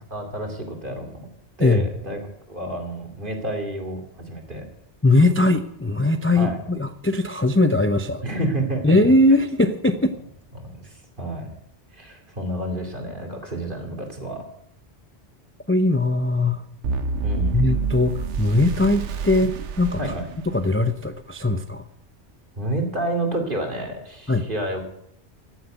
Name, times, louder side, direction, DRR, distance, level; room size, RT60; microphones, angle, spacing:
voice 1, 0.1-1.3 1.6-2.2 2.5-4.7 6.3-6.6 8.2-9.0 10.5-11.5 11.9-14.4 17.2-17.6 20.0-20.3 22.6-24.8, right 1 dB, 50° right, 3 dB, 2.8 m, -29 dB
voice 2, 5.0-8.2 8.8-10.1 15.7-16.6 17.5-20.1 20.5-21.8 24.3-24.5, left 2 dB, 15° left, 8 dB, 0.5 m, -20 dB
sound 1, 16.8-21.0, right 4 dB, 85° right, 1.2 m, -28 dB
14.5 x 7.9 x 9.1 m, 0.74 s
omnidirectional pair, 1.2 m